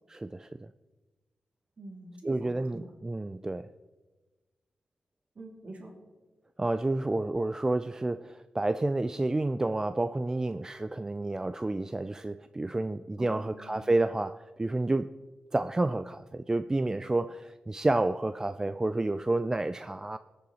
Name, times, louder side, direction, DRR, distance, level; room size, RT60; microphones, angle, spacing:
voice 1, 0.1-0.7 2.3-3.7 6.6-15.1 15.5-20.2, right 2 dB, 20° right, 12 dB, 0.3 m, -30 dB
voice 2, 1.8-2.9 5.3-5.9 13.2-13.9, right 2 dB, 50° right, 1 dB, 2.8 m, -46 dB
20.0 x 6.8 x 4.2 m, 1.2 s
cardioid pair, 75°, 3 cm